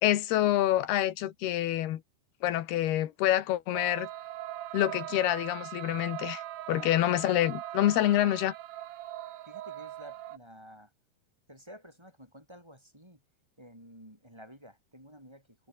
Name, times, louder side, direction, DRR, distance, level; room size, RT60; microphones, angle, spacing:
voice 1, 0.0-2.0 2.4-4.1 4.7-6.4 6.7-8.5, left 13 dB, 90° left, 3.4 m, -27 dB
sound 1, 3.7-10.4, right 14 dB, 75° right, 3.0 m, -41 dB
voice 2, 6.7-7.0 9.5-10.9 11.5-13.2 13.6-15.7, equal, 5° right, 7.2 m, -52 dB
omnidirectional pair, 4.4 m